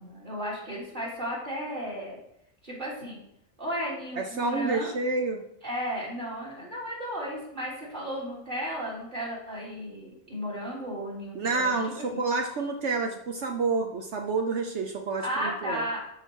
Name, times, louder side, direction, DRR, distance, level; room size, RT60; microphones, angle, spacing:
voice 1, 0.0-2.2 2.6-3.2 3.6-5.0 5.6-11.8 12.1-12.2 15.2-16.0, equal, 40° right, -4 dB, 3.6 m, -34 dB
voice 2, 4.2-5.4 11.3-15.9, right 3 dB, 65° right, 3 dB, 1.1 m, -29 dB
12.0 x 5.8 x 4.5 m, 0.78 s
omnidirectional pair, 1.3 m